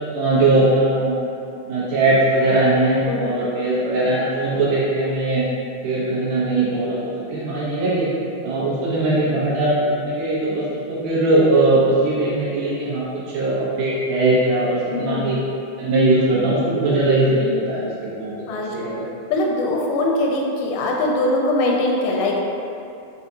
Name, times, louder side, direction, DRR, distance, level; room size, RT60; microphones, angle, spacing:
voice 1, 0.1-1.1 1.7-5.4 5.8-8.1 8.4-15.4 15.8-17.8 18.1-18.3 18.7-18.9, right 2 dB, 80° right, -8 dB, 2.5 m, -20 dB
voice 2, 3.1-3.4 14.9-15.3 18.5-18.7 19.3-22.4, left 2 dB, 85° left, -1 dB, 2.1 m, -22 dB
6.8 x 2.3 x 2.7 m, 2.7 s
omnidirectional pair, 3.6 m